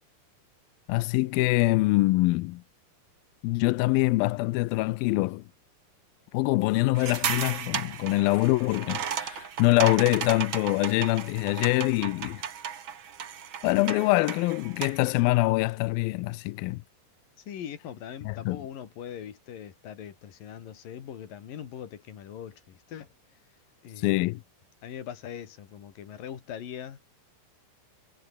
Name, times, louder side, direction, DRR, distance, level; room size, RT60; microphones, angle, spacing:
voice 1, 0.9-2.6 3.4-5.4 6.3-12.4 13.6-16.8 18.2-18.6 24.0-24.4, left 21 dB, 85° left, 2.1 m, -24 dB
sound 1, 6.9-15.1, right 8 dB, 65° right, 1.2 m, -35 dB
voice 2, 17.5-23.1 23.8-24.2 24.8-27.2, left 9 dB, 55° left, 3.8 m, -41 dB
omnidirectional pair, 5.0 m